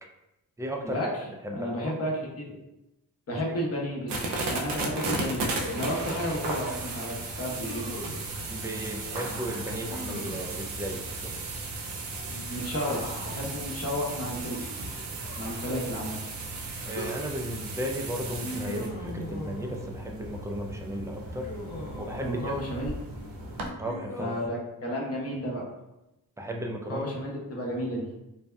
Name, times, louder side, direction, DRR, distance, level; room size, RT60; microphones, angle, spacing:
voice 1, 0.6-1.0 1.4-2.0 3.3-3.4 8.5-11.3 16.8-21.5 22.0-22.5 23.8-24.4 26.4-27.0, equal, 10° right, 2 dB, 0.4 m, -35 dB
voice 2, 1.5-2.5 3.3-5.4 5.7-7.9 12.5-14.7 15.4-16.2 22.2-22.9 24.2-25.6 26.9-28.1, equal, 35° left, -2 dB, 0.8 m, -32 dB
sound 1, 4.1-23.7, right 2 dB, 90° right, 0.5 m, -35 dB
Human voice, 5.4-6.2 7.6-8.3 9.9-10.7 12.2-13.4 14.5-16.0 16.7-17.2 18.4-20.0 21.4-22.6 23.6-24.5, left 1 dB, 65° left, 0.8 m, -40 dB
2.7 x 2.2 x 2.2 m, 0.93 s
supercardioid pair, 45°, 41 cm